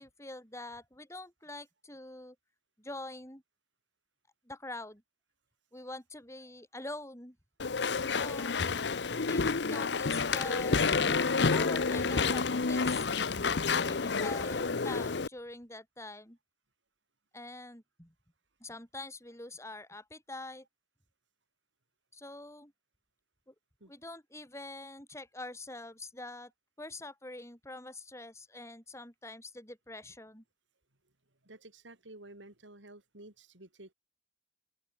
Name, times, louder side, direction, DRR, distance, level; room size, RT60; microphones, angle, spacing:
voice 1, 0.0-2.4 2.8-3.4 4.4-5.0 5.7-7.4 8.2-8.6 9.3-10.9 11.5-13.1 13.6-16.4 17.3-18.1 18.6-20.7 22.1-22.7 23.5-23.6 23.9-26.5 26.8-30.4, left 2 dB, 15° left, 7.7 m, -45 dB
Walk footsteps / Chatter / Squeak, 7.6-15.3, left 4 dB, 65° left, 0.8 m, -29 dB
voice 2, 31.4-33.9, right 2 dB, 85° right, 4.8 m, -52 dB
head